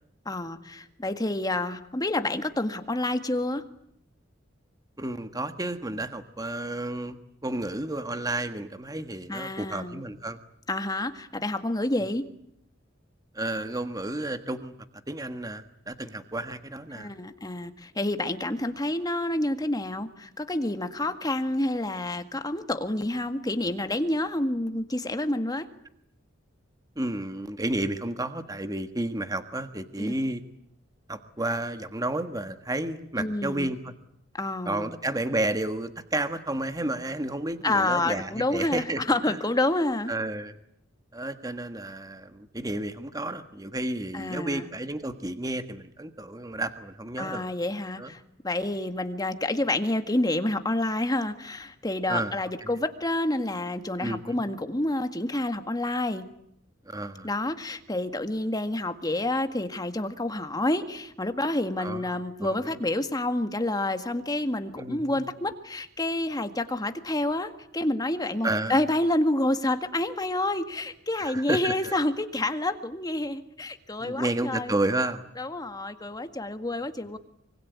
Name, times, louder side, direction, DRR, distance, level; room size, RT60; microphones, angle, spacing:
voice 1, 0.2-3.6 9.3-10.0 10.7-12.3 16.9-25.7 30.0-30.1 33.2-33.7 34.3-34.9 37.6-40.1 44.1-44.7 47.2-56.2 57.2-74.7 75.4-77.2, left 1 dB, 20° left, 8 dB, 1.8 m, -28 dB
voice 2, 5.0-10.4 13.3-14.7 15.1-17.1 26.9-30.4 31.1-33.9 34.6-39.4 40.1-40.6 41.1-47.5 48.0-48.1 52.1-52.3 52.6-52.7 54.0-54.4 56.8-57.3 61.8-62.8 64.8-65.2 68.4-68.8 71.2-71.9 74.0-75.2, right 1 dB, 20° right, 9 dB, 1.5 m, -31 dB
25.0 x 24.0 x 9.6 m, 0.73 s
head